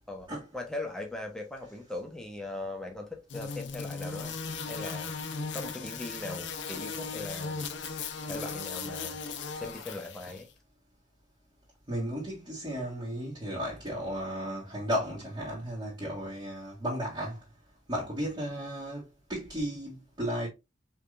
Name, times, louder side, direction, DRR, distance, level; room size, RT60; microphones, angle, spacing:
voice 1, 0.5-4.4 4.7-5.1 5.5-7.7 8.2-9.2 9.5-10.5, left 2 dB, 5° left, 1.0 m, -39 dB
sound 1, 3.3-10.4, left 4 dB, 70° left, 0.7 m, -37 dB
voice 2, 11.9-17.4 17.9-19.0 19.3-20.5, equal, 25° right, 1.8 m, -34 dB
5.1 x 3.3 x 2.5 m
head